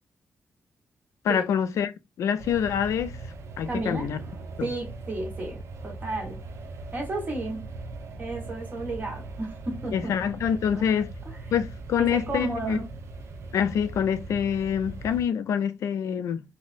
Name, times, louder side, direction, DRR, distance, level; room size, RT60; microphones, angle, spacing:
voice 1, 1.2-1.9 2.2-3.2 3.6-4.2 4.6-4.7 9.9-11.1 11.5-12.8 13.5-16.4, left 8 dB, 85° left, 0.4 m, -26 dB
sound 1, 2.4-15.2, right 3 dB, 65° right, 0.6 m, -40 dB
voice 2, 3.7-4.1 4.6-6.4 6.9-7.7 8.2-10.1 10.7-11.5 12.0-12.9, right 2 dB, 35° right, 1.3 m, -33 dB
4.0 x 2.0 x 2.4 m
wide cardioid pair, 145°, 5 cm